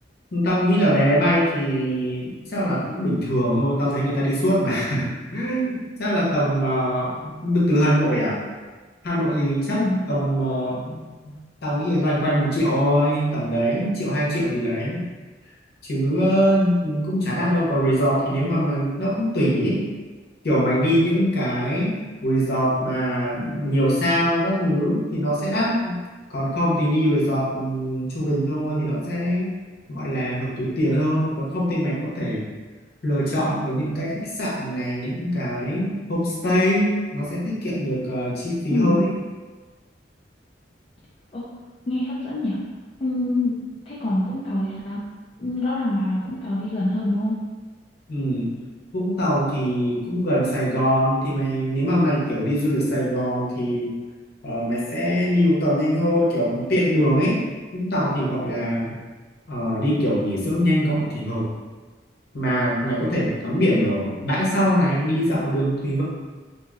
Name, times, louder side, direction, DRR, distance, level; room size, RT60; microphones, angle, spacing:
voice 1, 0.3-8.4 9.0-11.0 11.6-15.0 15.8-19.8 20.4-22.0 22.2-26.0 26.3-29.5 29.9-32.5 33.0-39.0 48.1-48.5 48.9-53.9 54.4-57.4 57.7-59.0 59.5-61.4 62.3-66.0, equal, 60° left, -6 dB, 0.8 m, -22 dB
voice 2, 38.7-39.1 41.3-41.5 41.9-42.6 43.0-43.5 43.9-45.0 45.4-47.4, left 1 dB, 30° left, -8 dB, 0.4 m, -25 dB
2.9 x 2.6 x 2.4 m, 1.3 s
head